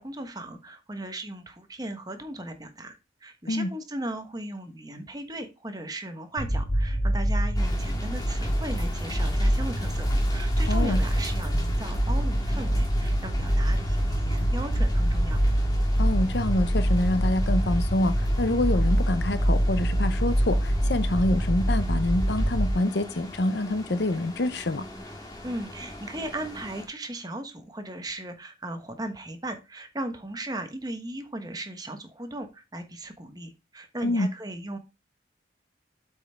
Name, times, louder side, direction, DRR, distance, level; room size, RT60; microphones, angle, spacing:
voice 1, 0.0-15.4 25.4-34.8, right 1 dB, 20° right, 1.2 m, -37 dB
sound 1, 6.4-22.7, equal, 80° left, 2.5 m, -25 dB
sound 2, 7.6-26.9, left 1 dB, 20° left, 2.1 m, -41 dB
voice 2, 16.0-24.8 34.0-34.3, left 1 dB, 60° left, 0.7 m, -26 dB
8.0 x 5.4 x 4.5 m
head